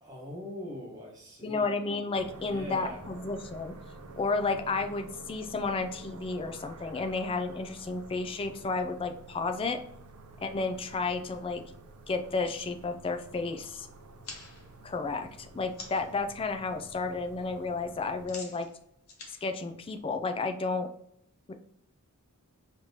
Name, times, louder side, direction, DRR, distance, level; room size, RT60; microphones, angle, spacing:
voice 1, 0.0-1.7 2.4-3.0, left 1 dB, 15° right, -4 dB, 1.2 m, -42 dB
voice 2, 1.4-3.8 4.1-9.8 10.4-11.6 12.1-13.9 14.8-18.7 19.3-20.9 21.5-21.6, left 3 dB, 25° left, 7 dB, 0.3 m, -32 dB
sound 1, 2.1-18.3, right 3 dB, 80° right, 0.5 m, -50 dB
sound 2, 14.2-16.2 16.6-17.0 17.3-20.5, left 3 dB, 75° left, 1.0 m, -48 dB
5.1 x 2.9 x 2.9 m, 0.77 s
head